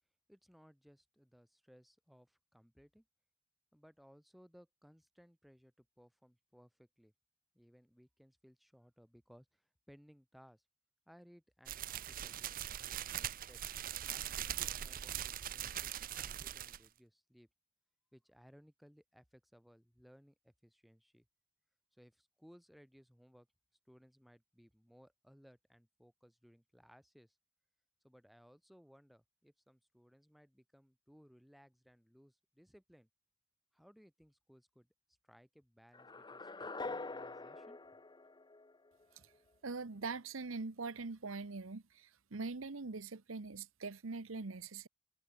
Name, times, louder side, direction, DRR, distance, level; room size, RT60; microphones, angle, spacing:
voice 1, 0.3-3.0 3.7-7.1 7.5-10.6 11.1-13.6 14.1-17.5 18.1-21.3 21.9-23.5 23.9-27.4 28.0-33.1 33.7-34.9 35.2-38.0, equal, ahead, 5.0 m, -64 dB
sound 1, 11.7-16.9, right 11 dB, 45° right, 0.5 m, -41 dB
sound 2, 35.9-39.0, left 3 dB, 20° left, 0.9 m, -45 dB
voice 2, 39.6-44.9, right 4 dB, 75° right, 1.0 m, -43 dB
head